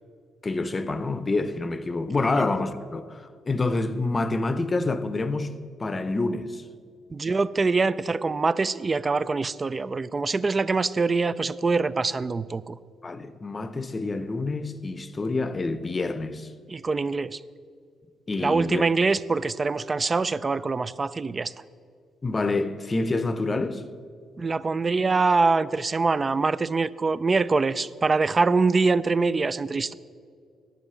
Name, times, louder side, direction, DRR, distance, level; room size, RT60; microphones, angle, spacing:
voice 1, 0.4-6.6 13.0-16.5 18.3-18.9 22.2-23.8, left 3 dB, 25° left, 0.7 m, -27 dB
voice 2, 7.1-12.8 16.7-17.4 18.4-21.5 24.4-29.9, right 4 dB, 30° right, 0.3 m, -24 dB
10.0 x 7.2 x 6.8 m
cardioid pair, 90°, 0 cm